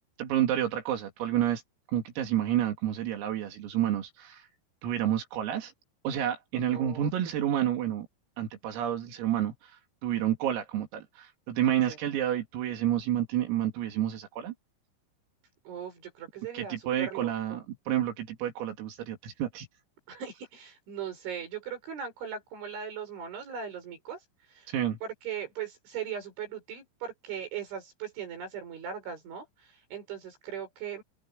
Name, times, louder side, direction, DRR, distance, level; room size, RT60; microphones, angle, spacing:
voice 1, 0.2-1.6 1.9-4.5 4.8-5.7 6.1-8.1 8.4-9.7 10.0-14.5 16.5-19.7 24.7-25.0, right 11 dB, 85° right, 5.5 m, -29 dB
voice 2, 6.7-7.1 11.9-12.0 15.6-17.6 20.1-24.2 24.5-24.7 25.0-31.0, right 8 dB, 65° right, 8.5 m, -39 dB
open air
omnidirectional pair, 5.9 m